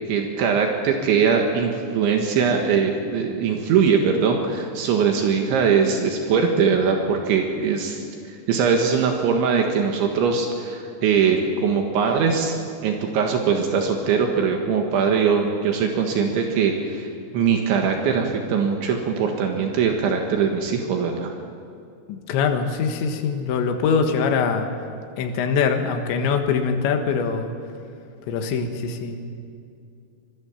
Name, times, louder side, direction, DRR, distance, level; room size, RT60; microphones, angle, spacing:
voice 1, 0.1-8.0 8.5-12.6 12.8-17.1 17.3-21.3, right 6 dB, 75° right, 3 dB, 4.0 m, -21 dB
voice 2, 22.1-24.7 25.2-27.5 28.3-29.2, left 5 dB, 75° left, 5 dB, 3.8 m, -23 dB
25.5 x 21.5 x 7.3 m, 2.5 s
omnidirectional pair, 5.5 m